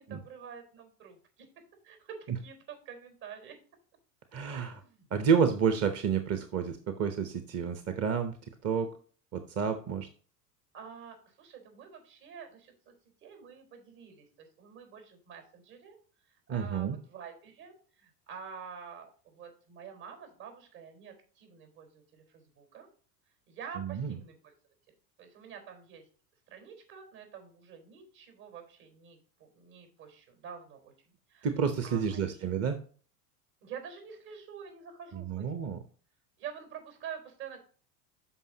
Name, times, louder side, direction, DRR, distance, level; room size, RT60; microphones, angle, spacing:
voice 1, 0.0-1.5 1.8-3.5 4.5-5.1 10.7-12.9 13.2-16.0 16.5-22.9 23.5-24.5 25.2-26.1 26.5-30.9 31.3-31.5 31.8-32.5 33.6-35.7 36.4-37.6, right 7 dB, 60° right, 5 dB, 4.4 m, -47 dB
voice 2, 4.3-4.7 5.1-8.3 8.6-8.9 9.3-10.1 16.5-17.0 23.8-24.2 31.4-32.7 35.1-35.8, right 6 dB, 30° right, 8 dB, 1.0 m, -29 dB
12.5 x 5.3 x 2.9 m, 0.42 s
hypercardioid pair, 90°, 47 cm